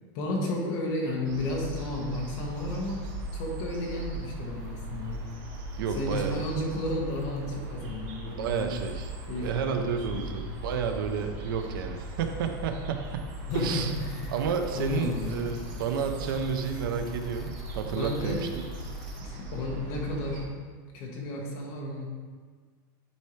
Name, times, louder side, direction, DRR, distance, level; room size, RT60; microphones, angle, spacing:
voice 1, 0.1-5.2 5.9-8.7 9.3-10.2 13.5-14.3 14.7-15.5 17.9-18.5 19.2-20.5 20.9-22.0, left 1 dB, 40° left, -1 dB, 1.4 m, -32 dB
sound 1, 1.2-20.5, right 1 dB, 40° right, 1.0 m, -39 dB
voice 2, 5.8-6.4 8.3-9.1 9.4-13.3 13.5-13.9 14.3-18.5, right 6 dB, 80° right, 6 dB, 0.8 m, -31 dB
sound 2, 13.5-19.2, left 1 dB, 5° left, 0.3 m, -46 dB
10.0 x 4.5 x 3.3 m, 1.5 s
supercardioid pair, 175°, 11 cm